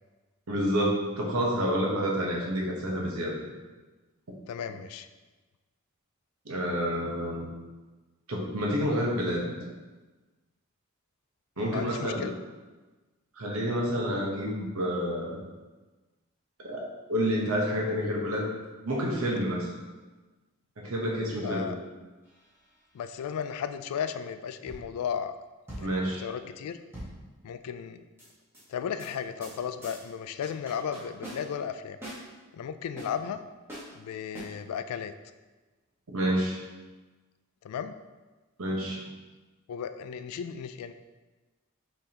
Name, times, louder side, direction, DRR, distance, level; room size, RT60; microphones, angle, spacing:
voice 1, 0.5-3.4 6.4-7.5 8.3-9.5 11.6-12.3 13.4-15.4 16.6-16.8 17.1-18.5 18.9-19.7 20.8-21.7 25.8-26.2 36.1-36.6 38.6-39.0, equal, 75° right, -2 dB, 0.9 m, -29 dB
voice 2, 4.5-5.1 11.6-12.3 21.4-21.8 22.9-25.3 25.8-26.8 27.4-28.0 28.7-32.0 32.5-33.4 33.9-35.1 37.6-37.9 39.7-40.9, left 7 dB, 90° left, 14 dB, 0.3 m, -35 dB
sound 1, 22.2-22.8 24.7-25.1 25.7-27.7 28.2-28.6 29.0-29.1 29.4-29.6 29.8-30.1 30.4-31.7 32.0-32.2 33.0-33.1 33.7-33.9 34.3-34.4, right 1 dB, 10° right, 1.2 m, -43 dB
5.4 x 3.4 x 2.8 m, 1.2 s
head